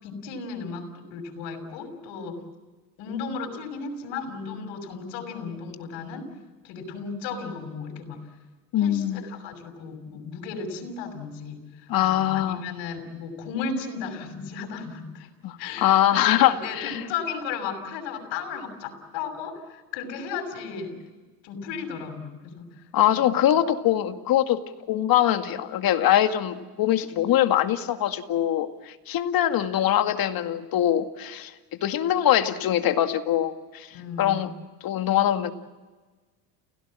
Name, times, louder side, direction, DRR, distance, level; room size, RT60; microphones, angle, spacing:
voice 1, 0.0-2.4 3.0-6.3 6.6-8.3 8.8-15.3 15.6-21.0 21.4-23.3 33.9-34.5, left 5 dB, 65° left, 5 dB, 6.4 m, -35 dB
voice 2, 8.7-9.2 11.9-12.6 15.4-17.0 22.9-24.6 24.9-31.5 31.8-33.9 34.2-34.6 34.8-35.5, left 11 dB, 45° left, 7 dB, 2.2 m, -23 dB
30.0 x 17.5 x 7.6 m, 1.3 s
supercardioid pair, 90°, 47 cm